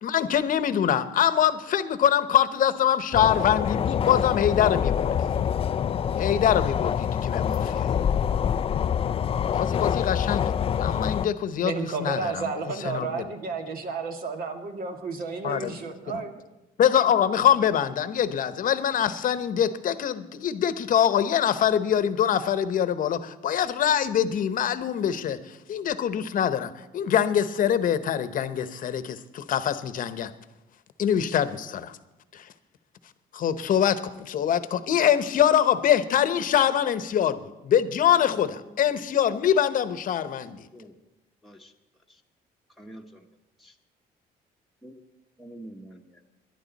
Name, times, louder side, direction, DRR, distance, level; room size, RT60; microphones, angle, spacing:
voice 1, 0.0-5.3 6.2-7.9 9.5-11.7 12.0-12.4 12.8-13.2 15.4-15.7 16.1-16.2 16.8-30.3 31.0-32.0 32.3-32.5 33.3-40.7, left 9 dB, 55° left, 12 dB, 1.0 m, -24 dB
sound 1, 3.1-11.3, left 8 dB, 35° left, 0.4 m, -26 dB
voice 2, 11.6-16.3, right 4 dB, 60° right, 4 dB, 2.2 m, -32 dB
voice 3, 38.3-39.0 40.7-40.9 41.4-41.7 42.1-42.2 42.8-43.3 43.6-43.8 44.8-44.9 45.4-46.2, right 1 dB, ahead, -1 dB, 1.3 m, -47 dB
21.5 x 11.0 x 4.2 m, 1.0 s
cardioid pair, 110°, 17 cm